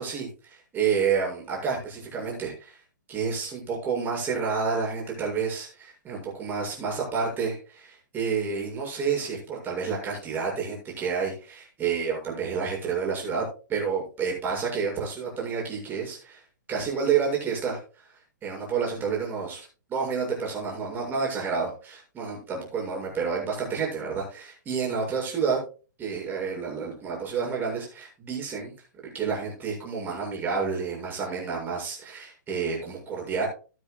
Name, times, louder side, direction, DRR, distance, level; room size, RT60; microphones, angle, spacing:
voice 1, 0.0-2.8 3.1-13.4 13.7-16.4 16.7-25.6 26.0-28.7 29.1-33.5, right 6 dB, 20° right, -1 dB, 7.1 m, -29 dB
15.5 x 11.5 x 2.4 m, 0.34 s
figure-of-eight pair, 115°, 10 cm